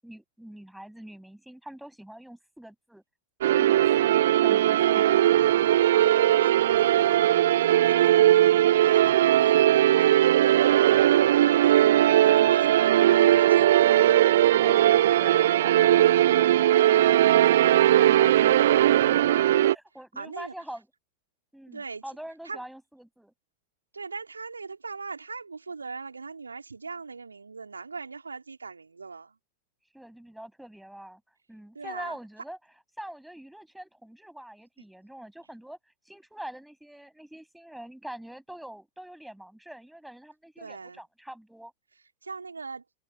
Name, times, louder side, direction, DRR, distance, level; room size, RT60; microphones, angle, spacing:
voice 1, 0.0-3.0 3.4-4.2 4.4-5.1 14.6-17.2 19.6-20.9 21.5-23.3 29.9-31.2 31.5-32.6 33.0-35.8 36.0-41.7, right 1 dB, ahead, 7.9 m, -44 dB
sound 1, 3.4-19.7, right 12 dB, 60° right, 0.5 m, -19 dB
voice 2, 5.6-13.8 20.1-20.5 21.7-22.0 22.4-22.6 23.9-29.3 31.7-32.2 40.6-41.0 42.2-42.8, right 4 dB, 75° right, 3.2 m, -40 dB
figure-of-eight pair, 90°, 0 cm